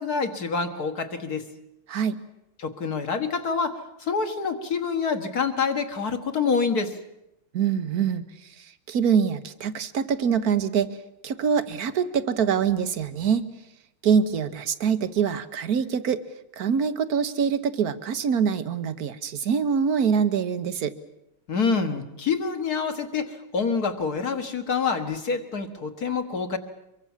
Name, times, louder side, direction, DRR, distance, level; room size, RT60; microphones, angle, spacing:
voice 1, 0.0-1.5 2.6-7.0 21.5-26.6, left 5 dB, 50° left, 7 dB, 1.9 m, -27 dB
voice 2, 7.5-10.9 11.2-13.5 14.0-16.2 16.6-20.9, right 7 dB, 50° right, 12 dB, 1.4 m, -24 dB
24.5 x 23.0 x 7.4 m, 0.85 s
omnidirectional pair, 2.3 m